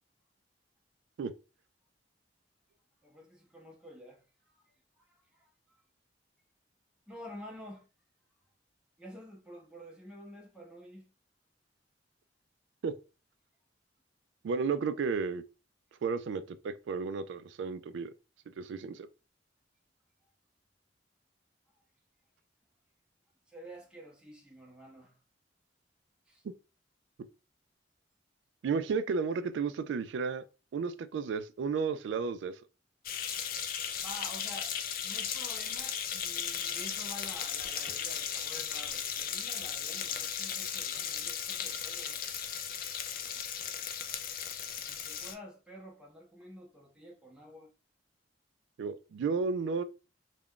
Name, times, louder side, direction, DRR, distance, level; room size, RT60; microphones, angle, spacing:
voice 1, 3.0-4.6 4.9-5.8 7.1-7.8 9.0-11.1 23.5-25.1 26.3-26.4 34.0-34.7 35.0-42.2 44.8-47.7, equal, 5° right, 0.6 m, -49 dB
voice 2, 14.4-15.4 16.0-18.1 18.6-19.1 28.6-30.4 30.7-32.5 48.8-49.8, right 5 dB, 75° right, 0.3 m, -33 dB
sound 1, 33.1-45.3, left 8 dB, 50° left, 0.4 m, -36 dB
2.3 x 2.1 x 3.6 m
head